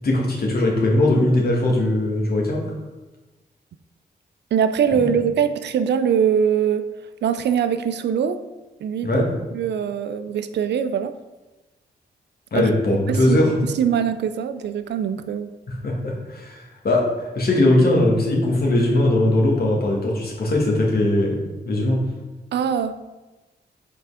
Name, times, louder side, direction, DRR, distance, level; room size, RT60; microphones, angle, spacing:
voice 1, 0.0-2.6 5.0-5.1 9.0-9.3 12.5-13.5 15.7-21.4 21.7-22.0, left 1 dB, 65° left, -2 dB, 2.0 m, -20 dB
voice 2, 4.5-6.9 7.2-8.4 8.8-9.1 9.5-11.1 12.5-12.7 13.1-13.4 13.6-15.5 22.5-22.9, right 8 dB, 85° right, 11 dB, 0.5 m, -22 dB
5.7 x 4.7 x 4.9 m, 1.1 s
cardioid pair, 55°, 17 cm